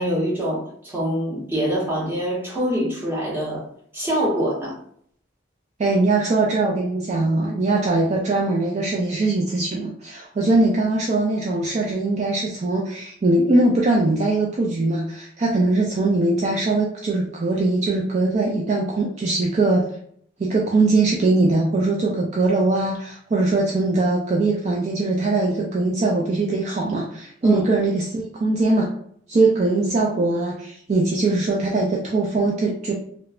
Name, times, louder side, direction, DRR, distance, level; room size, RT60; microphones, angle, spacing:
voice 1, 0.0-3.6 3.9-4.8 27.4-27.6, equal, 10° right, -6 dB, 0.8 m, -24 dB
voice 2, 5.8-19.9 20.4-28.9 29.3-32.9, right 2 dB, 35° right, -2 dB, 0.3 m, -21 dB
3.0 x 2.0 x 2.3 m, 0.64 s
head